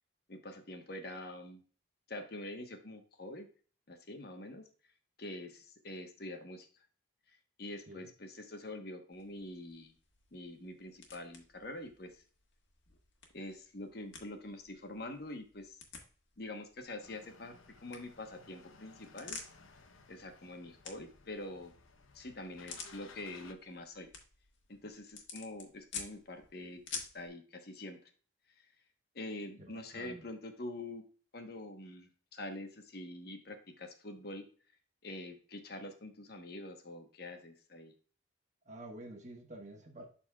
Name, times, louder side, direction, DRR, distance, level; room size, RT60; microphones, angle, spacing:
voice 1, 0.3-1.6 2.1-3.5 3.9-4.6 5.2-6.7 7.3-9.9 10.3-12.2 13.3-15.8 16.4-17.5 17.8-19.4 20.1-21.7 22.1-24.1 24.7-28.0 28.6-28.7 29.1-31.0 31.3-34.5 35.0-37.9, left 1 dB, 50° left, 5 dB, 1.1 m, -45 dB
sound 1, 9.1-27.3, left 5 dB, 70° left, 1.5 m, -51 dB
sound 2, 17.0-23.5, left 4 dB, 90° left, 0.8 m, -58 dB
voice 2, 29.6-30.2 38.6-40.1, right 1 dB, 35° right, 3 dB, 1.3 m, -49 dB
12.0 x 4.2 x 2.3 m, 0.40 s
head